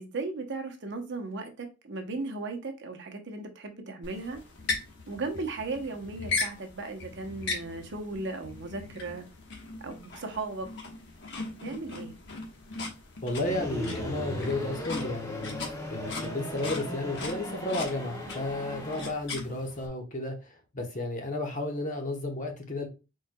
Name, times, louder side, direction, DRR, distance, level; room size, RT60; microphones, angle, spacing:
voice 1, 0.0-4.4 5.1-9.3 9.8-10.7 11.6-12.2, right 3 dB, 60° right, 0.8 m, -36 dB
sound 1, 4.0-19.9, left 3 dB, 60° left, 1.1 m, -39 dB
voice 2, 13.2-15.6 15.9-22.9, left 2 dB, 40° left, 0.9 m, -33 dB
sound 2, 13.4-19.1, left 1 dB, 20° left, 1.5 m, -37 dB
4.5 x 4.4 x 2.2 m
head